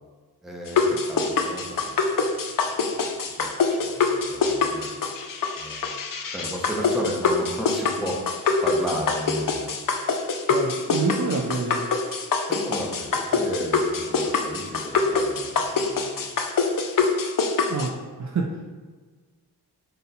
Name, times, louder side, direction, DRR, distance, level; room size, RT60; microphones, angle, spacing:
voice 1, 0.4-2.0 2.7-3.0 3.4-4.9 5.6-5.9 6.3-8.2 8.6-9.7 12.5-16.4, equal, ahead, -1 dB, 0.7 m, -34 dB
sound 1, 0.7-17.9, left 4 dB, 55° left, 0.5 m, -25 dB
voice 2, 10.5-11.9 17.7-18.7, right 3 dB, 45° right, 1 dB, 0.4 m, -27 dB
4.1 x 2.2 x 3.9 m, 1.4 s
wide cardioid pair, 85°, 41 cm